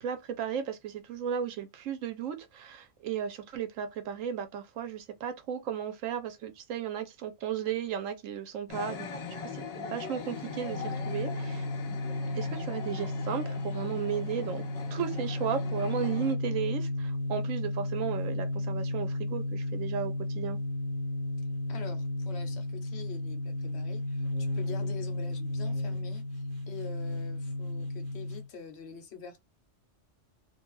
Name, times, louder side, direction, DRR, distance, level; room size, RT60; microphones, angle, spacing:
voice 1, 0.0-9.1 9.4-12.0 12.3-14.6 14.9-20.6, right 8 dB, 85° right, 1.1 m, -35 dB
sound 1, 8.7-16.4, left 5 dB, 80° left, 0.3 m, -41 dB
sound 2, 10.2-28.5, left 2 dB, 60° right, 1.2 m, -34 dB
voice 2, 21.7-24.3 24.5-29.5, left 6 dB, 60° left, 0.9 m, -46 dB
2.5 x 2.3 x 3.0 m
omnidirectional pair, 1.3 m